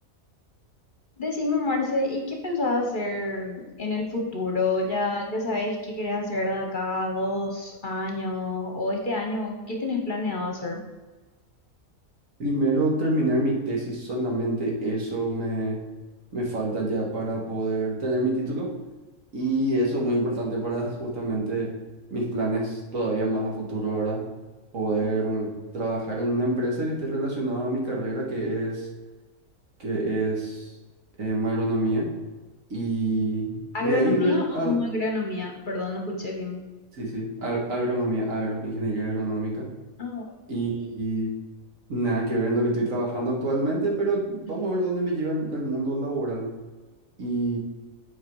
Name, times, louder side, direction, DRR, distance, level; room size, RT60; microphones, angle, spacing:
voice 1, 1.2-10.8 25.0-25.3 33.7-36.6 40.0-40.2, left 2 dB, 40° left, 1 dB, 1.0 m, -28 dB
voice 2, 12.4-15.8 16.3-18.7 19.3-21.7 22.1-24.2 24.7-28.9 29.8-30.7 31.2-32.1 32.7-34.8 37.0-39.6 40.5-41.3 41.9-46.5 47.2-47.6, right 1 dB, 70° right, -2 dB, 2.1 m, -26 dB
8.1 x 4.8 x 4.6 m, 1.2 s
omnidirectional pair, 1.5 m